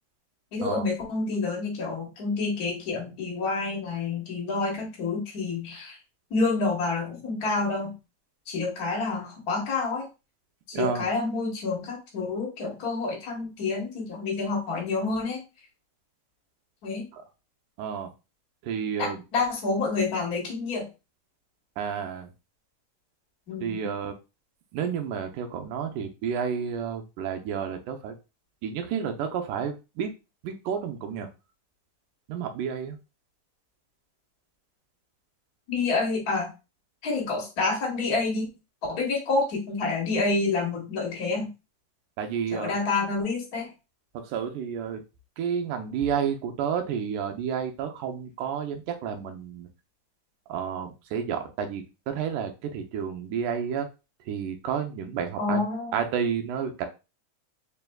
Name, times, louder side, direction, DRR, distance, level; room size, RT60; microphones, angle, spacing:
voice 1, 0.5-6.0 6.3-7.9 8.5-10.1 10.7-15.4 16.8-17.0 19.0-20.9 23.5-23.9 35.7-36.5 37.0-38.5 38.9-41.5 42.5-43.7 55.4-56.0, left 3 dB, 75° left, -2 dB, 0.8 m, -28 dB
voice 2, 10.7-11.1 17.1-17.2 17.8-18.1 18.6-19.2 21.8-22.3 23.6-24.1 24.7-28.2 28.6-30.1 30.4-31.3 32.3-33.0 42.2-42.7 44.1-45.0 45.4-49.7 50.5-53.9 54.3-55.7 55.9-56.9, right 7 dB, 80° right, 6 dB, 2.1 m, -30 dB
4.9 x 3.4 x 2.2 m, 0.29 s
omnidirectional pair, 3.6 m